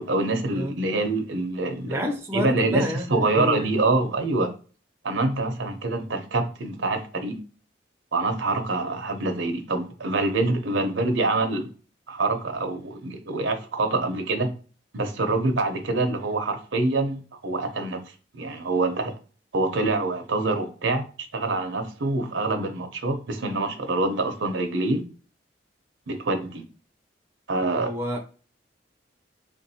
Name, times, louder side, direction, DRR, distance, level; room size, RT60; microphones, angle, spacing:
voice 1, 0.0-4.5 5.0-7.4 8.1-11.7 12.1-14.5 14.9-18.0 18.3-19.1 19.5-21.0 21.3-25.0 26.1-26.6 27.5-27.9, right 2 dB, 75° right, 0.7 m, -25 dB
voice 2, 1.8-3.7 27.8-28.2, left 1 dB, 15° right, 0.5 m, -29 dB
3.5 x 2.6 x 2.7 m
head